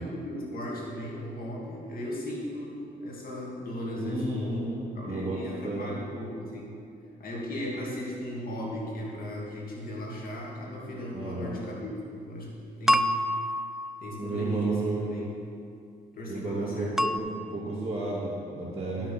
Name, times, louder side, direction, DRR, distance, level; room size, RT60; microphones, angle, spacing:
voice 1, 0.0-4.7 5.0-6.8 7.2-12.5 12.8-13.2 14.0-15.3 16.1-17.0 19.0-19.1, left 1 dB, 60° left, -3 dB, 2.4 m, -36 dB
voice 2, 4.0-5.4 5.6-5.9 11.1-11.6 14.2-15.0 16.3-19.1, right 2 dB, 25° right, -10 dB, 2.7 m, -32 dB
sound 1, 12.9-14.4 17.0-17.2, equal, ahead, 0.3 m, -27 dB
11.5 x 6.1 x 6.1 m, 2.4 s
cardioid pair, 85°, 17 cm